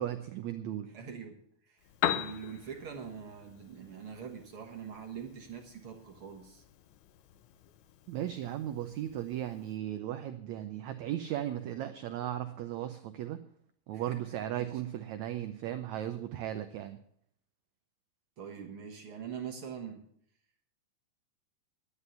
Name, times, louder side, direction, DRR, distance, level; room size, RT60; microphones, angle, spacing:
voice 1, 0.0-0.9 8.1-13.4 13.9-17.0, right 12 dB, 90° right, 8 dB, 1.6 m, -36 dB
voice 2, 0.9-1.4 1.7-1.8 2.1-6.6 13.9-14.2 14.5-14.7 18.4-20.0, right 7 dB, 60° right, 1 dB, 1.5 m, -43 dB
Piano, 1.8-9.8, left 11 dB, 75° left, 1.7 m, -41 dB
11.0 x 9.8 x 6.8 m, 0.66 s
omnidirectional pair, 4.1 m